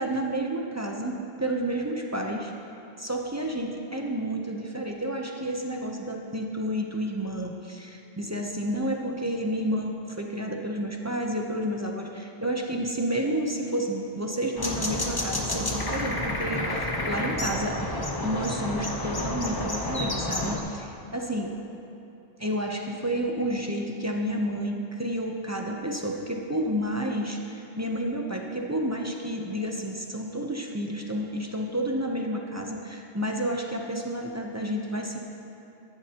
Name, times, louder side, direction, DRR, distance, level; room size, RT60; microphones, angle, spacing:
voice 1, 0.0-2.5 3.0-17.8 18.2-21.5 22.4-35.2, right 1 dB, 20° right, 0 dB, 0.6 m, -30 dB
sound 1, 14.6-20.6, left 1 dB, 20° left, 0.8 m, -30 dB
14.0 x 11.0 x 2.9 m, 2.7 s
omnidirectional pair, 1.2 m